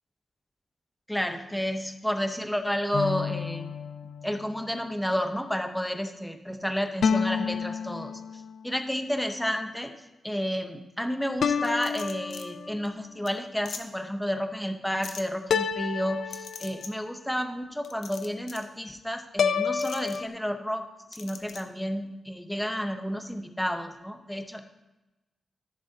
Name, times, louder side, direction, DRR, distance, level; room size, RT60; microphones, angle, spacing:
voice 1, 1.1-3.7 4.2-8.2 8.6-9.9 10.2-24.6, equal, 5° left, 6 dB, 0.7 m, -31 dB
sound 1, 2.9-4.6 7.0-8.7 11.4-12.9 15.5-17.1 19.4-20.3, left 6 dB, 65° left, 0.3 m, -29 dB
sound 2, 11.6-12.4 12.9-13.0 13.3-13.4 13.7-13.8 15.0-15.2 16.3-16.9 17.8-18.7 19.8-20.2 21.1-21.6, left 6 dB, 80° left, 0.8 m, -41 dB
14.5 x 7.2 x 2.7 m, 1.0 s
wide cardioid pair, 140°, 0 cm